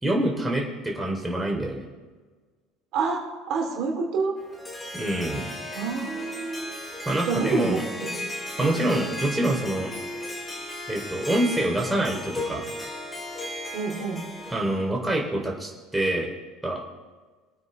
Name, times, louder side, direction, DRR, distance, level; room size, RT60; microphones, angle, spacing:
voice 1, 0.0-1.9 4.9-5.5 7.0-7.8 8.6-9.9 10.9-12.6 14.5-16.3 16.6-16.8, right 1 dB, 10° right, 0 dB, 3.0 m, -26 dB
voice 2, 2.9-4.3 5.7-6.8 7.2-8.3 8.6-9.2 13.7-14.2, right 4 dB, 60° right, 0 dB, 3.0 m, -28 dB
Harp, 4.4-14.9, left 1 dB, 20° left, 3.5 m, -36 dB
22.5 x 9.1 x 3.3 m, 1.4 s
hypercardioid pair, 65°, 0 cm